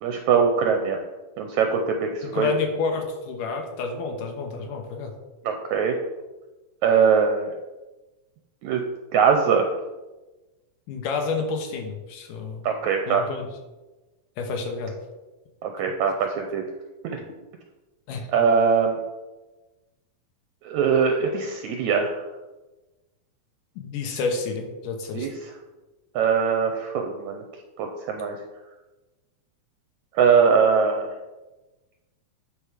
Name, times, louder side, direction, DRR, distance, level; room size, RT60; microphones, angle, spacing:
voice 1, 0.0-1.0 1.4-2.5 5.4-6.0 6.8-7.5 8.6-8.8 9.1-9.7 12.6-13.2 15.6-16.6 17.0-17.2 18.3-19.0 20.6-22.1 25.1-25.5 26.2-27.4 27.8-28.4 30.1-31.1, right 6 dB, 75° right, 4 dB, 1.9 m, -21 dB
voice 2, 2.2-5.1 10.9-12.6 13.1-13.5 14.4-14.9 18.1-18.3 23.8-25.3, left 4 dB, 80° left, 3 dB, 2.8 m, -29 dB
11.0 x 5.1 x 5.0 m, 1.1 s
omnidirectional pair, 3.7 m